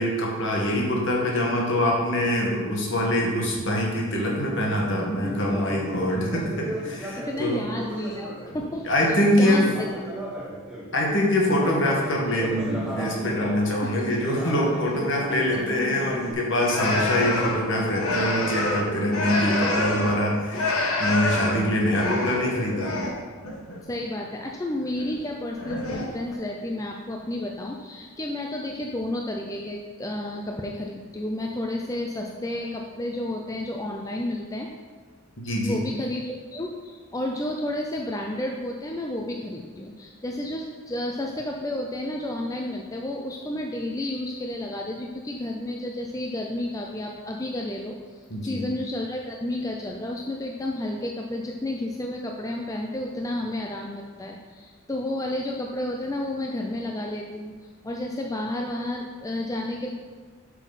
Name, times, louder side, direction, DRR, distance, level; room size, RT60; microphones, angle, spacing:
voice 1, 0.0-7.6 8.9-9.7 10.9-23.0 35.4-35.8 48.3-48.6, left 1 dB, 60° left, -2 dB, 1.7 m, -24 dB
Conversation, 5.2-10.9 11.4-16.3, equal, 5° right, 1.3 m, -35 dB
voice 2, 7.2-8.3 8.5-9.9 13.8-13.9 23.8-34.7 35.6-59.9, left 1 dB, 15° left, 1 dB, 0.4 m, -31 dB
sound 1, 16.6-20.2 20.5-23.2 23.4-23.8 24.8-25.2 25.6-26.4, left 2 dB, 85° left, 1.3 m, -27 dB
8.1 x 6.2 x 4.1 m, 1.5 s
head